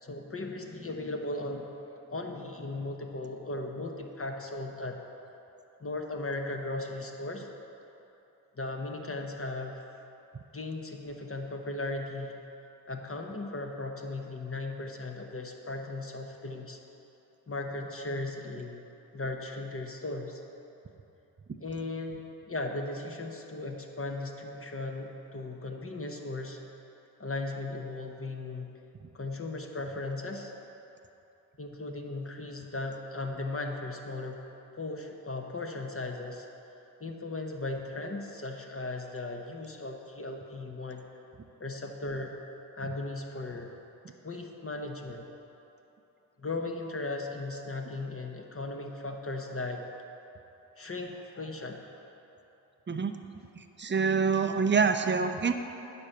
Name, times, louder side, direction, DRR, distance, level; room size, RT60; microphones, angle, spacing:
voice 1, 0.0-1.7 2.1-5.0 5.8-7.5 8.6-9.8 10.5-12.4 12.9-16.8 17.5-18.9 19.1-20.4 21.6-22.2 22.5-26.6 27.2-28.7 29.1-30.5 31.6-34.4 34.7-36.5 37.0-41.1 41.6-42.4 42.7-43.7 44.2-45.3 46.4-49.9 50.8-51.9, left 2 dB, 25° left, 2 dB, 1.1 m, -37 dB
voice 2, 53.6-55.5, right 5 dB, 25° right, 7 dB, 0.7 m, -26 dB
9.7 x 4.4 x 6.6 m, 2.9 s
hypercardioid pair, 40°, 49 cm